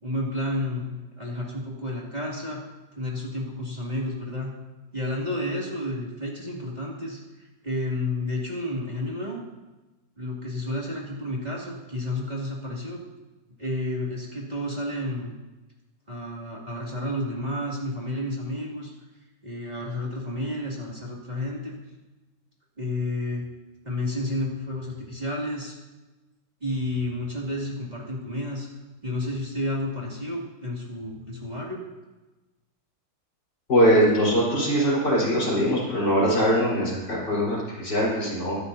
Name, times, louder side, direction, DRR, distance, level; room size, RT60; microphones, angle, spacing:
voice 1, 0.0-2.6 3.0-4.5 4.9-9.4 10.2-13.0 13.6-15.3 16.1-18.9 19.4-21.8 22.8-23.4 23.8-25.8 26.6-28.7 29.0-31.8, left 1 dB, 25° right, -4 dB, 2.8 m, -31 dB
voice 2, 33.7-38.6, equal, 70° left, -5 dB, 5.4 m, -22 dB
22.0 x 11.5 x 2.8 m, 1.1 s
omnidirectional pair, 1.9 m